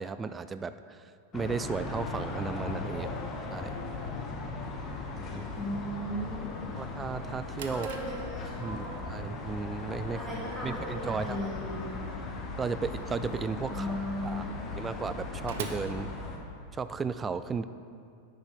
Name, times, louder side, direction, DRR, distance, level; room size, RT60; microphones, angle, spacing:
voice 1, 0.0-3.2 3.5-3.8 5.3-5.4 6.8-7.9 8.6-11.4 12.6-13.9 14.2-14.4 14.8-16.1 16.7-17.6, right 5 dB, 20° right, 12 dB, 0.3 m, -35 dB
sound 1, 1.3-16.4, left 3 dB, 30° left, 1.0 m, -38 dB
voice 2, 5.6-6.5 7.7-9.1 10.1-11.9 13.7-14.8, equal, 10° left, -6 dB, 1.6 m, -37 dB
Drawer open or close, 7.5-16.9, right 6 dB, 55° right, 0.6 m, -48 dB
9.6 x 6.6 x 3.9 m, 2.4 s
figure-of-eight pair, 90°, 0 cm